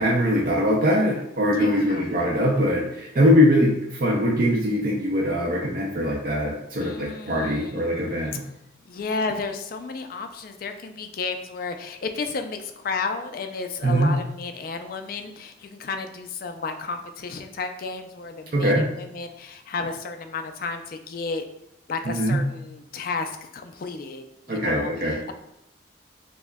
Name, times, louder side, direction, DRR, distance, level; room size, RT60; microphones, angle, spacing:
voice 1, 0.0-8.4 13.8-14.1 18.5-18.9 22.1-22.4 24.5-25.2, equal, 50° right, -3 dB, 0.5 m, -22 dB
voice 2, 1.6-2.3 6.8-8.4 8.9-21.4 21.9-25.3, left 4 dB, 50° left, 6 dB, 0.3 m, -33 dB
5.9 x 2.1 x 2.2 m, 0.80 s
head